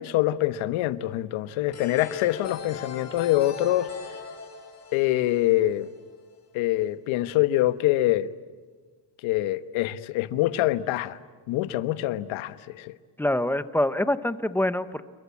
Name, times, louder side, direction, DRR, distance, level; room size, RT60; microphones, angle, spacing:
voice 1, 0.0-3.9 4.9-5.9 6.5-8.3 9.2-11.2 11.5-12.9, left 15 dB, 85° left, 1.4 m, -25 dB
sound 1, 1.7-6.4, left 5 dB, 35° left, 4.8 m, -41 dB
voice 2, 13.2-15.0, left 1 dB, 5° left, 0.8 m, -25 dB
29.5 x 22.5 x 8.5 m
cardioid pair, 150°, 47 cm